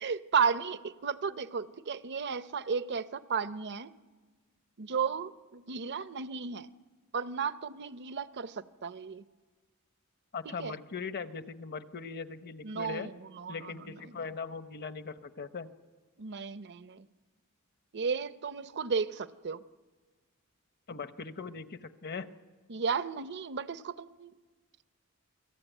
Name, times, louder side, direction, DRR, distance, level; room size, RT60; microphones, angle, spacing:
voice 1, 0.0-3.9 4.8-6.7 7.1-9.2 10.5-10.8 12.6-13.1 13.4-13.5 16.2-17.0 17.9-19.6 22.7-24.3, right 6 dB, 55° right, 14 dB, 0.7 m, -33 dB
voice 2, 10.3-13.1 13.5-15.7 20.9-22.3, left 5 dB, 50° left, 11 dB, 0.9 m, -40 dB
28.0 x 19.0 x 9.1 m, 1.4 s
head